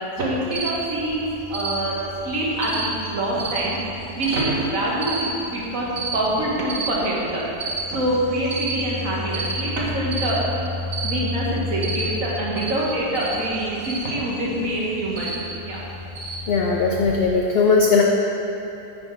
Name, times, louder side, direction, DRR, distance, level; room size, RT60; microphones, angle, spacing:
voice 1, 0.2-2.0 2.2-5.9 6.1-7.4 7.9-10.4 11.0-15.3 15.6-15.8, right 1 dB, 60° right, -5 dB, 1.7 m, -25 dB
Cricket, 0.5-17.3, right 1 dB, 75° right, 1.9 m, -31 dB
voice 2, 16.5-18.0, left 4 dB, 75° left, -1 dB, 0.5 m, -18 dB
9.7 x 4.3 x 4.6 m, 2.9 s
omnidirectional pair, 1.7 m